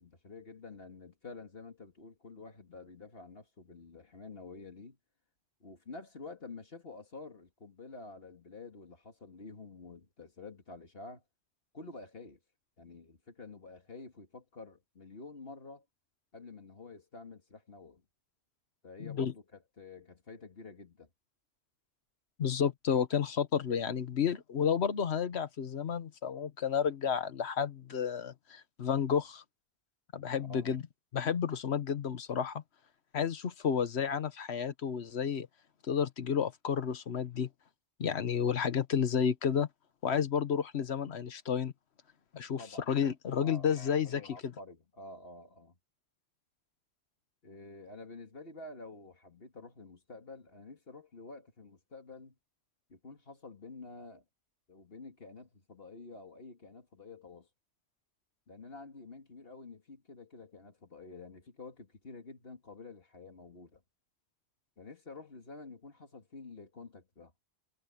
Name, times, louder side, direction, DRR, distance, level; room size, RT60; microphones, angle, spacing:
voice 1, 0.0-5.0 5.6-11.2 11.7-12.4 12.8-15.8 16.3-18.0 18.8-21.1 30.5-30.7 42.6-42.9 43.4-45.7 47.4-52.4 52.9-54.2 54.7-57.5 58.5-63.8 64.8-67.3, left 3 dB, 65° left, 2.4 m, -49 dB
voice 2, 19.0-19.3 22.4-29.4 30.1-30.8 31.1-32.6 33.1-35.5 35.8-37.5 38.0-39.7 40.0-41.7 42.3-44.5, left 7 dB, 85° left, 1.3 m, -31 dB
omnidirectional pair, 1.1 m